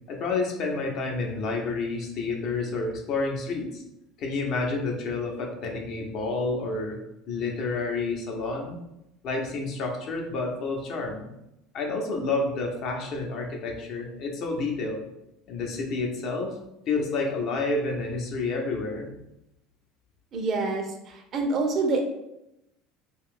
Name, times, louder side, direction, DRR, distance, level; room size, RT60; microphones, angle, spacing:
voice 1, 0.1-3.8 4.2-7.0 7.3-8.8 9.2-11.3 11.7-15.0 15.5-16.6 16.9-19.1, left 3 dB, 55° left, 1 dB, 0.7 m, -29 dB
voice 2, 20.3-22.0, right 3 dB, 45° right, 3 dB, 0.6 m, -27 dB
2.6 x 2.3 x 3.6 m, 0.86 s
supercardioid pair, 100°, 0 cm